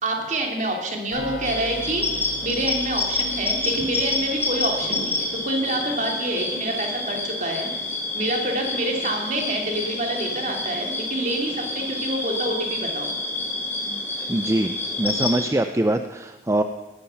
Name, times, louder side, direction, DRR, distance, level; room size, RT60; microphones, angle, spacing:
voice 1, 0.0-2.0 2.4-13.1, right 1 dB, 45° right, 2 dB, 2.9 m, -27 dB
sound 1, 1.1-4.8, left 1 dB, 85° left, 6.0 m, -39 dB
sound 2, 1.4-15.5, left 2 dB, 15° left, 3.0 m, -28 dB
voice 2, 14.3-16.6, right 1 dB, 15° right, 8 dB, 0.5 m, -23 dB
18.5 x 13.0 x 5.8 m, 1.1 s
head